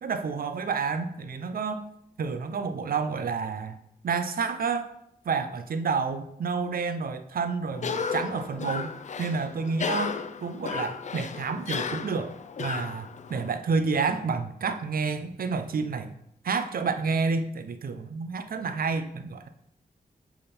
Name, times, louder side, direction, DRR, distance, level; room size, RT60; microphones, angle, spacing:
voice 1, 0.0-1.9 2.2-3.8 4.0-4.9 5.3-8.9 9.2-10.1 10.4-16.1 16.4-19.5, right 5 dB, 65° right, 9 dB, 0.6 m, -29 dB
Cough, 7.7-13.5, left 6 dB, 45° left, 0.4 m, -34 dB
6.9 x 3.7 x 5.3 m, 0.76 s
wide cardioid pair, 110°, 16 cm